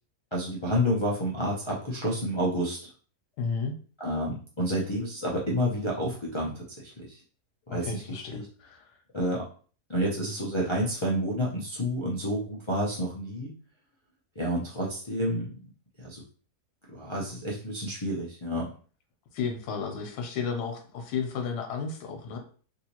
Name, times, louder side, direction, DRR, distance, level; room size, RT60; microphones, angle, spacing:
voice 1, 0.3-2.8 4.0-7.2 7.7-8.5 9.1-9.5 9.9-13.5 14.4-15.5 16.0-16.2 16.9-18.7, equal, 50° left, -5 dB, 0.3 m, -29 dB
voice 2, 3.4-3.7 7.7-8.8 19.3-22.4, left 5 dB, 85° left, 3 dB, 1.3 m, -33 dB
3.4 x 2.7 x 2.9 m, 0.41 s
omnidirectional pair, 1.7 m